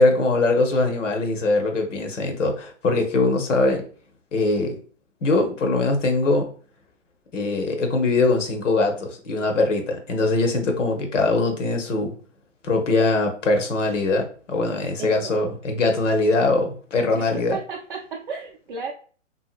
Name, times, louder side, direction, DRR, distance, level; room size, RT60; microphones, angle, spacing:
voice 1, 0.0-3.8 4.3-4.7 5.2-6.5 7.3-12.1 12.6-17.6, left 3 dB, 75° left, 4 dB, 0.8 m, -22 dB
voice 2, 15.0-15.4 17.1-18.9, right 5 dB, 45° right, -2 dB, 0.4 m, -34 dB
2.7 x 2.6 x 2.4 m, 0.43 s
hypercardioid pair, 130°, 37 cm